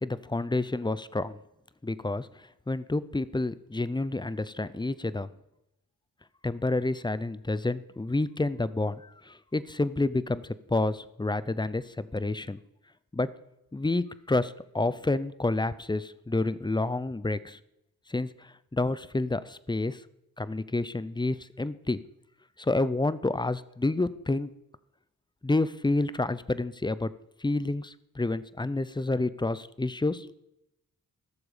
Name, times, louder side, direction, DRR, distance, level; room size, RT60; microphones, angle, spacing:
voice 1, 0.0-1.4 1.8-5.3 6.4-12.6 13.1-13.3 13.7-17.6 18.1-20.0 20.4-22.0 22.6-24.5 25.4-27.1 27.4-30.4, left 2 dB, 15° left, 16 dB, 0.6 m, -29 dB
15.0 x 7.0 x 5.1 m, 0.86 s
cardioid pair, 60°, 35 cm